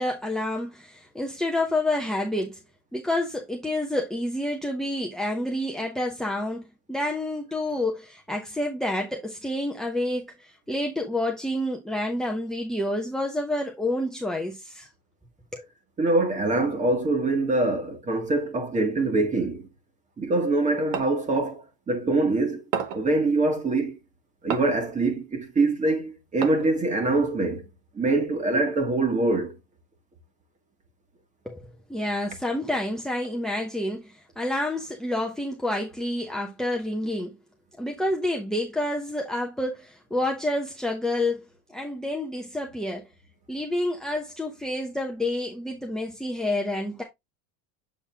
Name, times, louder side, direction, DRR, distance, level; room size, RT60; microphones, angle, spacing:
voice 1, 0.0-2.6 2.9-14.9 15.5-15.7 31.5-37.4 37.8-41.4 41.7-43.1 43.5-47.0, left 1 dB, ahead, 0.9 m, -29 dB
voice 2, 16.0-19.7 20.2-22.6 22.9-24.0 24.4-27.6 27.9-29.5, right 2 dB, 20° right, 1.6 m, -24 dB
sound 1, 20.9-21.2 22.7-23.1 24.5-24.9 26.4-26.8, right 8 dB, 90° right, 1.2 m, -31 dB
7.4 x 4.0 x 3.4 m
supercardioid pair, 140°, 36 cm